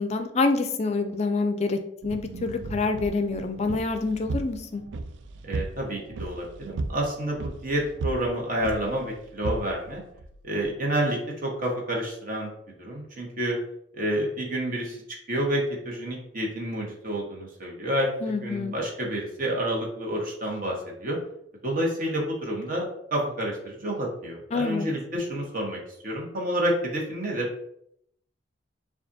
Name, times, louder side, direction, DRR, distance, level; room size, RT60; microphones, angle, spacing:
voice 1, 0.0-4.8 18.2-18.8 24.5-24.9, left 3 dB, 35° left, 7 dB, 0.4 m, -26 dB
sound 1, 2.0-10.7, right 2 dB, 70° right, 0.4 m, -36 dB
voice 2, 5.5-10.0 10.4-12.5 12.8-13.6 13.9-15.0 15.3-21.2 21.6-25.8 26.0-27.5, right 1 dB, 45° right, -1 dB, 1.1 m, -29 dB
6.7 x 2.4 x 2.7 m, 0.73 s
head